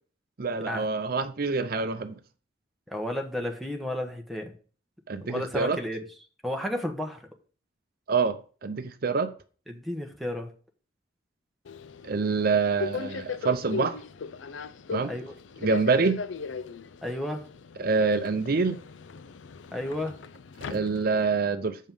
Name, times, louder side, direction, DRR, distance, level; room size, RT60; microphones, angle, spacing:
voice 1, 0.4-2.1 5.1-5.8 8.1-8.4 8.6-9.3 12.0-14.0 14.9-15.1 15.6-16.2 17.8-18.8 20.7-21.8, right 4 dB, 55° right, 0.6 m, -26 dB
voice 2, 2.9-4.5 5.2-6.0 6.4-7.2 9.7-10.5 15.0-15.3 17.0-17.4 19.7-20.2, left 1 dB, ahead, 1.1 m, -32 dB
Subway metro underground, 11.7-21.4, left 5 dB, 85° left, 0.5 m, -38 dB
7.4 x 5.2 x 5.3 m
head